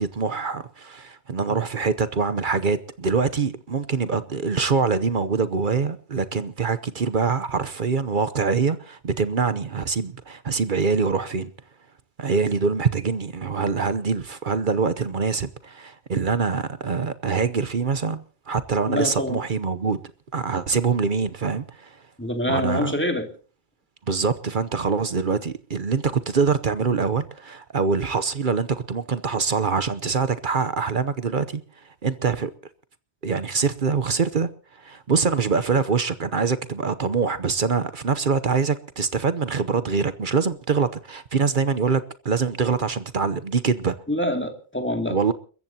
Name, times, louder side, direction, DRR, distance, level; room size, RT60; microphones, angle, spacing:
voice 1, 0.0-11.5 12.2-20.0 20.3-22.0 22.5-22.9 24.1-31.6 32.0-32.5 33.2-34.5 34.8-43.9 45.1-45.3, right 5 dB, 50° right, 1.0 m, -24 dB
voice 2, 18.9-19.4 22.2-23.3 44.1-45.2, left 1 dB, 10° left, 2.5 m, -25 dB
30.0 x 14.5 x 2.8 m
omnidirectional pair, 1.1 m